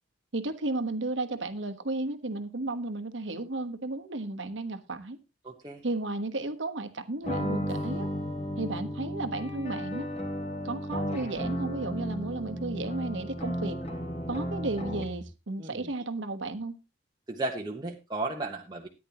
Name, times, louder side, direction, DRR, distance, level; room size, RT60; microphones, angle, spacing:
voice 1, 0.3-5.2 5.8-8.1 8.6-10.1 10.6-13.8 14.3-16.8, right 2 dB, 65° right, 8 dB, 1.3 m, -33 dB
voice 2, 5.4-5.8 15.6-15.9 17.3-18.9, right 2 dB, 20° right, 0 dB, 1.1 m, -34 dB
sound 1, 7.2-15.3, equal, 35° left, 2.9 m, -34 dB
Acoustic guitar / Strum, 7.7-12.0, left 1 dB, 90° left, 4.1 m, -51 dB
14.0 x 10.0 x 3.0 m, 0.26 s
head